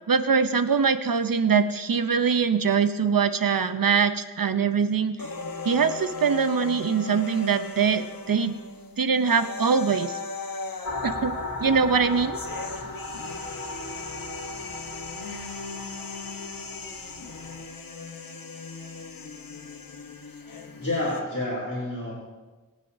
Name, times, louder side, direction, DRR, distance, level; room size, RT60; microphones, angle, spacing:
voice 1, 0.1-5.2 5.6-8.6 9.0-10.2 11.0-11.3 11.6-12.4, right 6 dB, 75° right, 9 dB, 0.7 m, -23 dB
sound 1, 5.2-21.2, left 3 dB, 85° left, 1.1 m, -38 dB
sound 2, 10.8-17.6, left 2 dB, 65° left, 2.3 m, -37 dB
voice 2, 20.8-22.1, left 1 dB, 45° left, -6 dB, 3.6 m, -29 dB
23.5 x 9.1 x 2.7 m, 1.3 s
wide cardioid pair, 45°, 34 cm